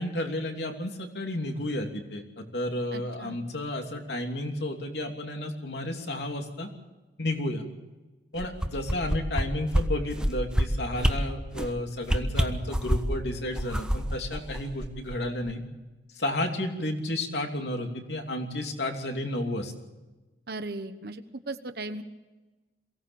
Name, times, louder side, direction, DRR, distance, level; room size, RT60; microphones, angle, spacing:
voice 1, 0.0-6.7 7.2-7.6 8.3-15.6 16.2-19.7, left 1 dB, 75° left, 3 dB, 3.0 m, -32 dB
voice 2, 2.9-3.4 20.5-22.0, right 2 dB, 60° right, 9 dB, 1.1 m, -37 dB
sound 1, 8.4-9.4 9.7-9.8 10.2-10.6 11.0-11.1 11.5-11.7 12.0-13.2 13.6-15.2 15.5-15.6, equal, 5° right, 1.2 m, -25 dB
23.0 x 17.0 x 7.1 m, 1.1 s
head